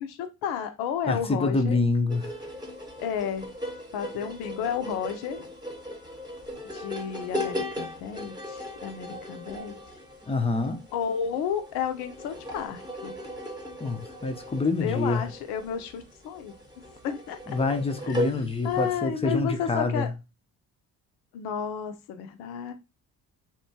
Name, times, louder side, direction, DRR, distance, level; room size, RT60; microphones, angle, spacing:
voice 1, 0.0-1.8 3.0-3.5 3.9-5.5 6.7-9.8 10.9-13.2 14.8-16.5 17.0-17.4 18.1-20.1 21.3-22.7, left 8 dB, 70° left, 0.6 m, -32 dB
voice 2, 1.1-2.3 10.3-10.8 13.8-15.2 17.5-20.1, left 3 dB, 15° left, 0.5 m, -26 dB
sound 1, 2.1-19.0, left 1 dB, 10° right, 0.9 m, -38 dB
2.8 x 2.2 x 2.7 m
hypercardioid pair, 50°, 39 cm